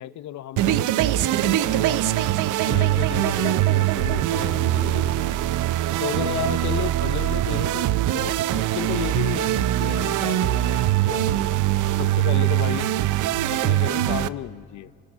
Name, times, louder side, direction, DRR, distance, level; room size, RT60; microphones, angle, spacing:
voice 1, 0.0-2.0 2.6-5.5 6.0-11.4 12.0-12.9 13.5-14.9, left 13 dB, 70° left, 17 dB, 0.7 m, -33 dB
sound 1, 0.6-14.3, right 14 dB, 85° right, 0.7 m, -22 dB
27.5 x 24.5 x 8.9 m, 2.2 s
cardioid pair, 90°, 30 cm